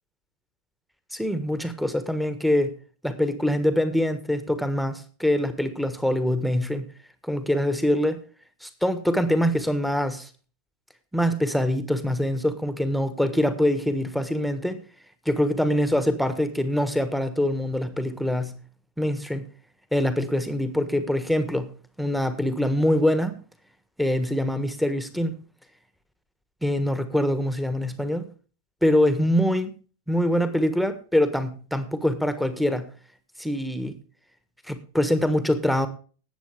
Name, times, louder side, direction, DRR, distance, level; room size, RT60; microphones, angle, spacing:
voice 1, 1.1-2.7 3.0-6.9 7.2-8.2 8.6-10.3 11.1-14.8 15.2-18.6 19.0-19.5 19.9-21.7 22.0-23.4 24.0-25.4 26.6-28.3 28.8-29.8 30.1-32.9 33.4-34.0 34.7-35.9, left 1 dB, ahead, 10 dB, 1.5 m, -24 dB
19.0 x 8.4 x 3.5 m, 0.38 s
figure-of-eight pair, 90°, 0 cm